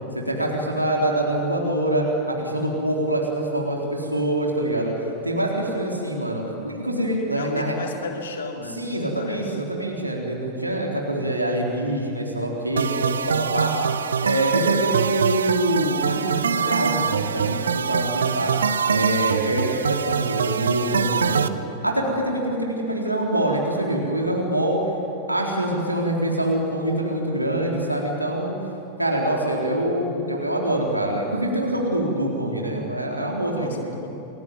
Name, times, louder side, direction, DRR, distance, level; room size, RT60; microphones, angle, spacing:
voice 1, 0.1-4.9 5.2-7.8 8.7-13.7 14.2-18.5 18.8-21.5 21.8-24.8 25.3-28.5 29.0-34.0, right 1 dB, 85° right, -1 dB, 4.0 m, -25 dB
voice 2, 7.4-8.9 9.2-9.6 33.5-34.1, left 4 dB, 60° left, 1 dB, 3.8 m, -34 dB
sound 1, 12.8-21.5, right 6 dB, 70° right, 0.9 m, -24 dB
29.0 x 21.5 x 9.4 m, 2.8 s
figure-of-eight pair, 90°, 0 cm